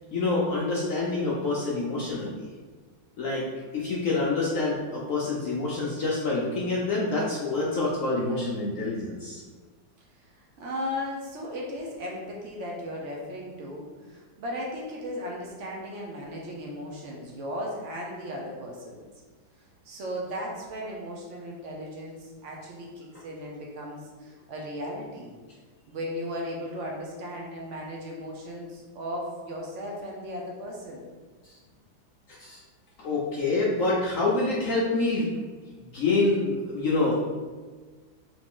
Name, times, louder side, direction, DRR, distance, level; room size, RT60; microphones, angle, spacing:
voice 1, 0.1-2.5 3.2-3.4 3.7-9.4 32.3-32.6 33.0-35.3 35.9-37.2, left 3 dB, 80° left, -5 dB, 0.7 m, -27 dB
voice 2, 10.3-19.0 19.8-25.3 25.9-31.0, equal, 70° right, -2 dB, 0.7 m, -36 dB
4.0 x 3.1 x 3.6 m, 1.4 s
omnidirectional pair, 2.2 m